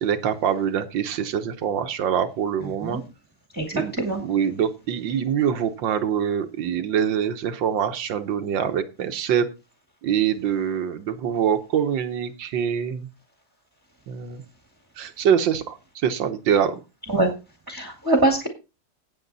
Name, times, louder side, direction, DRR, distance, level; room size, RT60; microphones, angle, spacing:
voice 1, 0.0-3.0 3.7-9.5 10.0-13.1 14.1-14.4 15.0-16.8, right 8 dB, 80° right, 9 dB, 1.8 m, -24 dB
voice 2, 3.6-4.2 17.1-17.3 17.7-18.5, right 2 dB, 10° right, 5 dB, 1.5 m, -23 dB
17.5 x 7.0 x 4.0 m, 0.29 s
omnidirectional pair, 2.0 m